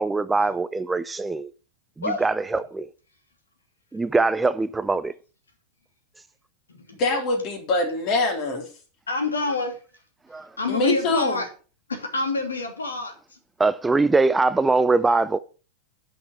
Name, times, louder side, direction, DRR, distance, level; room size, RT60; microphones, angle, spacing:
voice 1, 0.0-1.5 2.2-2.9 3.9-5.1 10.3-10.5 13.6-15.4, right 3 dB, 10° right, 0.5 m, -22 dB
voice 2, 7.0-8.7 10.7-11.4, left 2 dB, 40° left, 3.7 m, -24 dB
voice 3, 9.1-9.8 10.6-11.5 11.9-13.4, left 3 dB, 75° left, 2.8 m, -27 dB
10.5 x 6.1 x 6.3 m
figure-of-eight pair, 90°, 0 cm